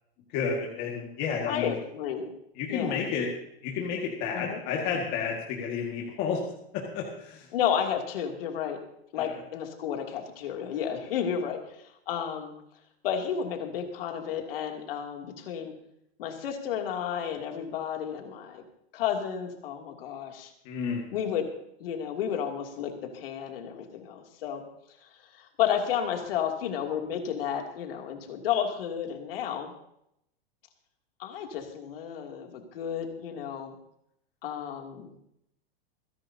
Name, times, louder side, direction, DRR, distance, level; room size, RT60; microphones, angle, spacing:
voice 1, 0.3-1.7 2.6-3.3 3.6-6.4 6.7-7.5 9.2-9.4 20.7-21.0, left 6 dB, 30° left, -1 dB, 1.9 m, -31 dB
voice 2, 1.5-2.3 2.7-3.0 4.3-4.6 7.5-8.8 9.1-12.5 13.0-15.7 16.2-18.6 18.9-20.5 21.1-21.5 21.8-24.6 25.0-25.1 25.4-29.7 31.2-33.7 34.4-35.1, left 8 dB, 65° left, 3 dB, 2.8 m, -32 dB
27.5 x 10.5 x 2.8 m, 0.76 s
supercardioid pair, 165°, 31 cm